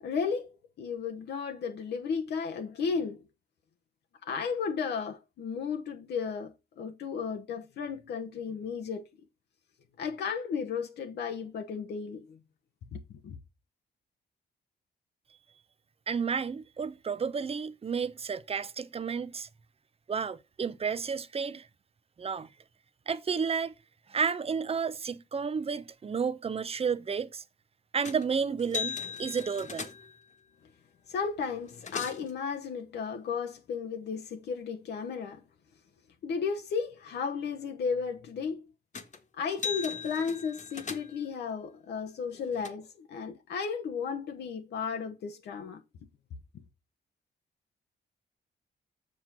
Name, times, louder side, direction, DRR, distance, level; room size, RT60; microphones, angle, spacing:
voice 1, 0.0-3.2 4.2-9.0 10.0-12.4 12.9-13.4 31.1-35.4 36.2-38.6 39.4-45.8, left 6 dB, 80° left, 1.1 m, -34 dB
voice 2, 16.1-19.5 20.1-21.7 22.2-22.5 23.1-23.7 24.1-27.4 27.9-29.9, right 6 dB, 35° right, 0.7 m, -31 dB
sound 1, 28.0-28.3 28.6-30.2 31.2-31.3 31.6-32.3 38.9-39.2 39.5-41.3 42.1-42.7, left 6 dB, 45° left, 1.5 m, -38 dB
7.5 x 4.4 x 5.8 m
cardioid pair, 80°, 17 cm